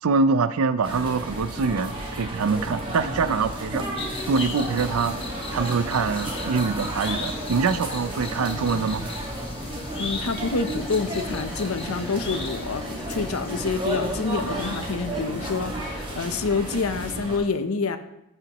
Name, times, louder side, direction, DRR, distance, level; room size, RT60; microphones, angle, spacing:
voice 1, 0.0-3.9 4.3-5.2 5.5-9.1, right 4 dB, 85° right, 13 dB, 0.5 m, -24 dB
sound 1, 0.8-17.4, right 1 dB, 25° right, 1.7 m, -32 dB
sound 2, 4.0-15.6 15.9-16.0, left 3 dB, 25° left, 1.0 m, -39 dB
voice 2, 10.0-18.0, left 4 dB, 80° left, 9 dB, 0.7 m, -27 dB
sound 3, 10.8-16.6, left 1 dB, 5° left, 1.1 m, -43 dB
14.5 x 5.7 x 3.0 m, 0.86 s
head